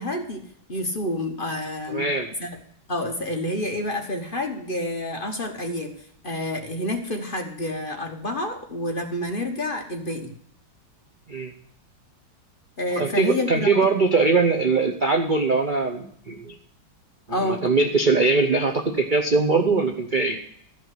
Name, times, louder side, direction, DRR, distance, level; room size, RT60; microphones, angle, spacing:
voice 1, 0.0-2.1 2.4-2.6 2.9-5.9 6.2-10.3 12.8-13.9 17.3-17.6, left 1 dB, 35° left, 3 dB, 1.0 m, -29 dB
voice 2, 1.9-2.3 11.3-11.5 13.0-16.6 17.4-20.4, right 3 dB, 50° right, 4 dB, 0.5 m, -21 dB
13.0 x 5.6 x 7.7 m, 0.66 s
omnidirectional pair, 2.0 m